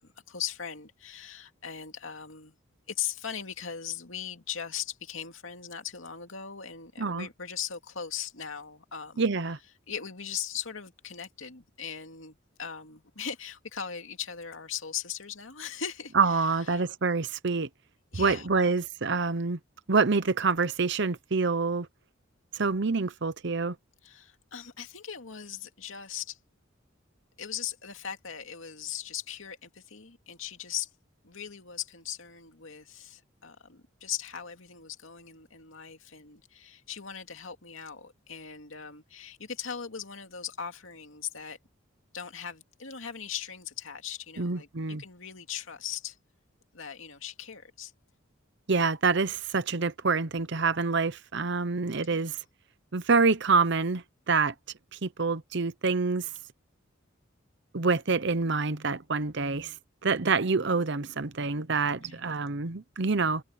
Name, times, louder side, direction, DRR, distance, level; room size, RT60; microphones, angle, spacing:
voice 1, 0.0-2.6 2.9-9.3 9.9-16.8 18.1-18.7 24.0-26.4 27.4-30.9 31.2-41.6 42.1-46.2 46.7-47.9 52.1-52.4 62.0-62.4, left 8 dB, 70° left, 2.5 m, -39 dB
voice 2, 9.2-9.6 16.2-17.7 18.1-19.6 19.9-21.9 22.5-23.7 44.4-45.0 48.7-52.4 52.9-54.5 55.0-56.3 57.7-59.7 60.0-63.4, right 4 dB, 55° right, 0.8 m, -26 dB
head